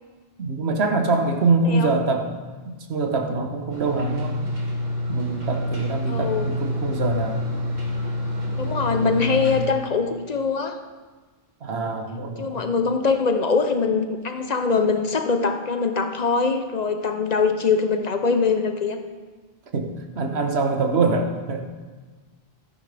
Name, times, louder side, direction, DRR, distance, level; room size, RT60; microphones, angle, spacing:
voice 1, 0.4-2.3 2.7-4.4 5.1-7.5 9.0-9.2 11.6-12.6 19.7-21.6, right 3 dB, 90° right, 4 dB, 1.4 m, -24 dB
voice 2, 1.6-1.9 6.1-6.5 8.6-10.8 12.4-19.0, left 4 dB, 45° left, 7 dB, 0.7 m, -23 dB
sound 1, 3.7-9.6, left 1 dB, 45° right, 2.3 m, -27 dB
13.0 x 10.5 x 3.4 m, 1.4 s
omnidirectional pair, 1.0 m